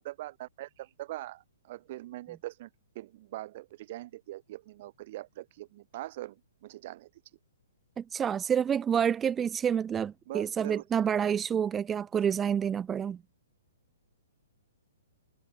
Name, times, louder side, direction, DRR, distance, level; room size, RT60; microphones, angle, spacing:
voice 1, 0.0-2.7 2.9-7.1 10.3-10.8, right 16 dB, 30° right, 6.2 m, -42 dB
voice 2, 8.0-13.2, right 8 dB, 10° right, 3.1 m, -28 dB
hypercardioid pair, 180°, 0 cm